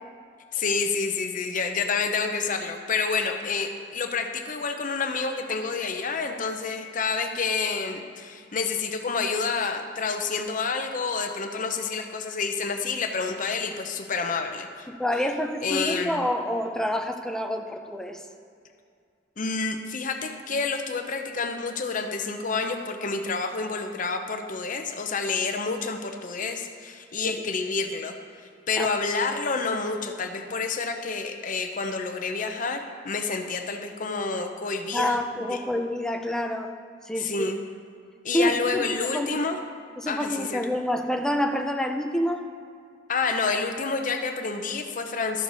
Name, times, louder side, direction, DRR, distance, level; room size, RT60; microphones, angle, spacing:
voice 1, 0.5-14.9 15.6-16.2 19.4-28.1 28.4-35.2 35.5-35.6 37.2-37.6 38.2-39.6 40.1-40.6 43.1-45.4, left 4 dB, 45° left, 5 dB, 0.7 m, -28 dB
voice 2, 14.9-18.2 27.2-27.4 28.8-28.9 34.9-36.7 37.1-37.5 38.3-39.4 40.0-42.5, left 1 dB, 5° left, 4 dB, 0.5 m, -28 dB
12.5 x 6.5 x 4.0 m, 2.3 s
head